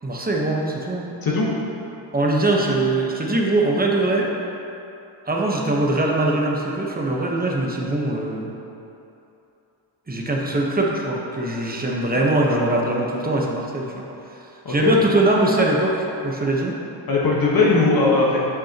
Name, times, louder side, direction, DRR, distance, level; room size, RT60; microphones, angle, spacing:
voice 1, 0.0-1.1 2.1-4.3 5.3-8.5 10.1-14.1 14.7-16.8, right 2 dB, 20° right, -2 dB, 1.0 m, -22 dB
voice 2, 12.2-12.7 14.6-15.0 17.1-18.4, left 3 dB, 45° left, -4 dB, 1.3 m, -20 dB
8.4 x 6.1 x 2.9 m, 2.9 s
cardioid pair, 85°, 50 cm